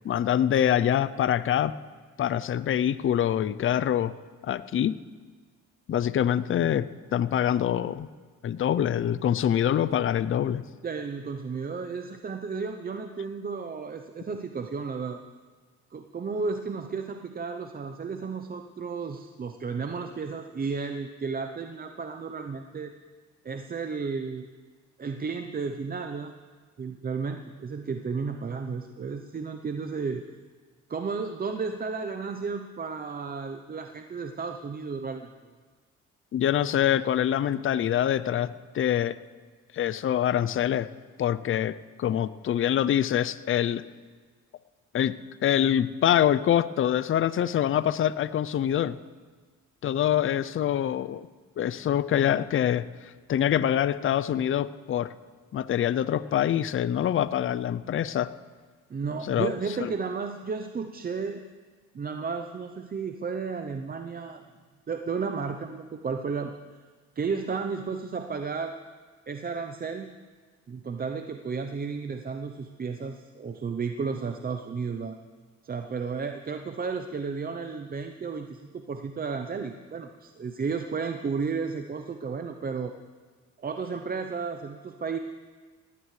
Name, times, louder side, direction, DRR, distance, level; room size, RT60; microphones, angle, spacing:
voice 1, 0.0-1.8 2.2-4.1 4.4-4.9 5.9-8.1 8.4-10.6 36.3-39.2 39.7-40.9 41.2-43.8 44.9-45.1 45.4-49.0 49.8-51.3 51.6-55.1 55.5-58.3 59.3-59.5 59.8-59.9, left 10 dB, 45° left, 16 dB, 0.5 m, -25 dB
voice 2, 10.8-15.2 15.9-22.9 23.4-24.5 25.0-26.4 26.8-30.3 30.9-35.3 58.9-61.4 61.9-64.4 64.9-66.8 67.2-68.7 69.3-70.1 70.7-75.2 75.6-82.9 83.6-85.2, right 5 dB, 30° right, 6 dB, 0.7 m, -33 dB
19.0 x 16.0 x 3.2 m, 1.5 s
cardioid pair, 90°, 30 cm